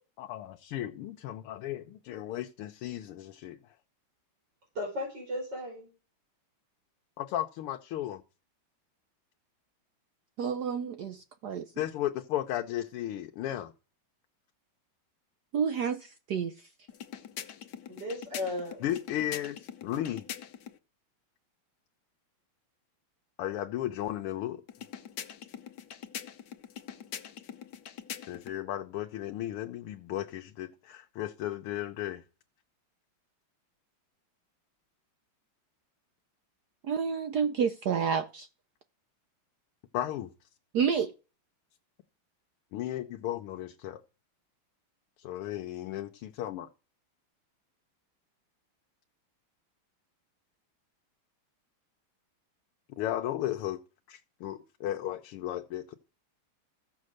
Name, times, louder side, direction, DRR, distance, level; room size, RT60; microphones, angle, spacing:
voice 1, 0.2-3.6 7.2-8.2 11.8-13.7 18.8-20.3 23.4-24.6 28.3-32.2 39.9-40.3 42.7-44.0 45.2-46.7 52.9-53.8 54.1-56.0, left 12 dB, 80° left, 1.7 m, -35 dB
voice 2, 4.8-5.9 17.9-18.8, left 1 dB, 50° right, 5.5 m, -35 dB
voice 3, 10.4-11.7 15.5-16.7 36.8-38.5 40.7-41.1, right 7 dB, 65° right, 1.0 m, -30 dB
sound 1, 16.9-20.8 24.7-28.6, left 9 dB, 60° left, 1.4 m, -43 dB
15.0 x 6.4 x 6.4 m
omnidirectional pair, 2.4 m